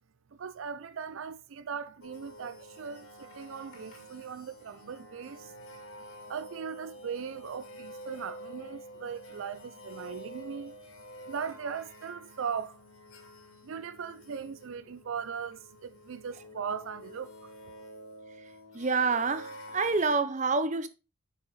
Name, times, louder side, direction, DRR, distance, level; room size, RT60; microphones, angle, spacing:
voice 1, 0.3-5.5 6.3-10.8 11.3-12.8 13.6-17.5, right 6 dB, 70° right, 0.4 m, -39 dB
sound 1, 2.0-20.2, equal, 90° left, 2.2 m, -49 dB
voice 2, 18.7-20.9, right 4 dB, 35° right, 0.7 m, -27 dB
7.6 x 6.0 x 4.0 m
head